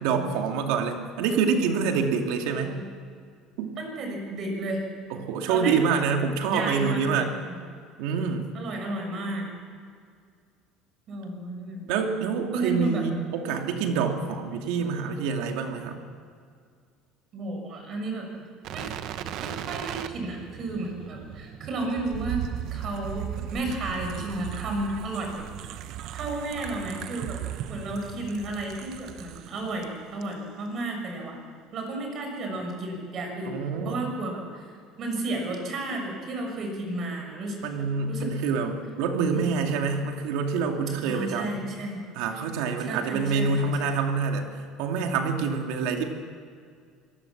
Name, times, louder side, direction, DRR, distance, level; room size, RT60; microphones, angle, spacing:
voice 1, 0.0-2.8 3.6-3.7 5.1-7.3 8.0-8.5 11.9-16.0 33.5-34.0 37.6-41.6 42.2-44.5 44.8-46.0, right 5 dB, 80° right, 4 dB, 2.5 m, -26 dB
voice 2, 3.8-4.9 5.5-5.8 6.4-7.6 8.5-9.5 11.1-11.8 12.5-13.0 17.3-18.3 18.7-18.9 19.4-22.4 22.7-25.4 26.1-27.4 27.7-31.4 31.7-34.6 35.0-37.6 38.1-38.3 39.3-39.5 41.0-42.0 42.8-44.0, right 2 dB, 40° right, 2 dB, 6.4 m, -33 dB
rotative mezclas, 18.6-29.9 30.2-30.3, right 11 dB, 55° right, 1.0 m, -37 dB
25.0 x 18.5 x 7.3 m, 2.1 s
cardioid pair, 145°, 0 cm